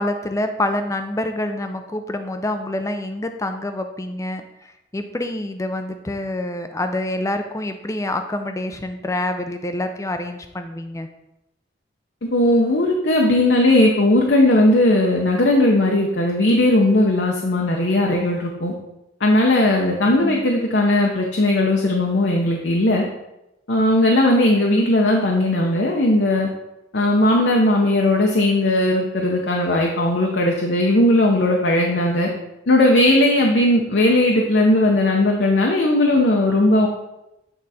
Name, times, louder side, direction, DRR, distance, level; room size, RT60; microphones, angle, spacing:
voice 1, 0.0-11.1 20.0-20.4, left 1 dB, 15° left, 7 dB, 0.5 m, -27 dB
voice 2, 12.3-18.7 19.2-23.1 23.7-26.5 26.9-32.3 32.7-36.9, left 1 dB, 65° left, 0 dB, 0.7 m, -17 dB
8.6 x 3.9 x 4.1 m, 0.92 s
head